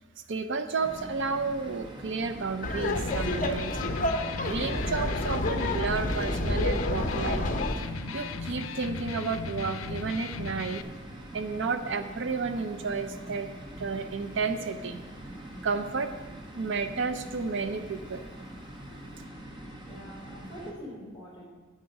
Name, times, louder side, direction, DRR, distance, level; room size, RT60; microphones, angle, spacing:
voice 1, 0.3-3.8 4.4-7.5 7.8-7.9 8.1-10.8 11.3-13.5 13.8-15.0 15.6-16.1 16.5-18.3, right 4 dB, 60° right, 9 dB, 0.5 m, -32 dB
sound 1, 0.8-20.7, right 1 dB, 25° right, 1.3 m, -44 dB
Laughter, 2.6-7.7, left 1 dB, 40° left, 0.8 m, -29 dB
Electric guitar, 2.8-10.8, left 4 dB, 80° left, 0.5 m, -37 dB
voice 2, 19.8-21.4, equal, 20° left, -3 dB, 3.5 m, -44 dB
9.5 x 8.6 x 5.4 m, 1.4 s
head